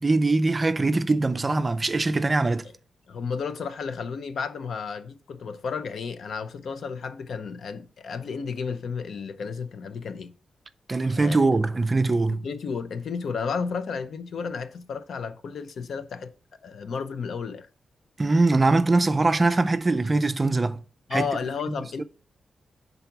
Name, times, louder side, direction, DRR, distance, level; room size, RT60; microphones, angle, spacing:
voice 1, 0.0-2.7 10.9-12.4 18.2-20.8 21.1-21.2 22.0-22.1, right 3 dB, 25° right, 0.4 m, -22 dB
voice 2, 3.1-10.3 11.0-11.6 12.3-16.3 16.6-17.7 21.1-22.0, left 5 dB, 65° left, 0.6 m, -32 dB
5.7 x 4.0 x 5.8 m
wide cardioid pair, 135°, 0 cm